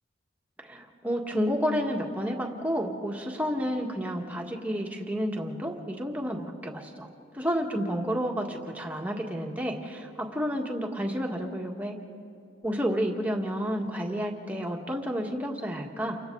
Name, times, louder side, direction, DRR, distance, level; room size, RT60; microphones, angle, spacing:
voice 1, 0.6-7.1 7.3-12.0 12.6-16.2, equal, 10° right, 0 dB, 1.7 m, -30 dB
30.0 x 25.0 x 4.0 m, 2.6 s
head